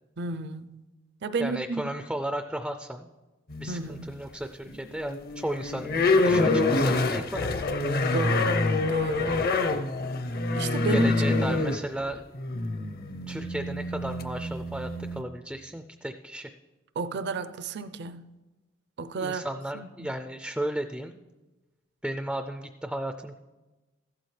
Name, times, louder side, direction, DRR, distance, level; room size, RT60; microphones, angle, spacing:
voice 1, 0.2-0.8 1.2-1.9 3.7-4.1 8.1-8.6 8.9-9.4 10.5-11.4 17.0-18.3 19.0-19.4 19.7-20.1, right 4 dB, 60° right, 0.5 m, -32 dB
voice 2, 1.4-3.1 3.6-7.6 10.9-12.2 13.3-16.5 19.2-21.2 22.0-23.4, right 1 dB, 5° right, 0.3 m, -34 dB
sound 1, 3.5-4.2 4.7-15.2, left 2 dB, 50° left, 0.7 m, -26 dB
14.5 x 12.5 x 3.3 m
head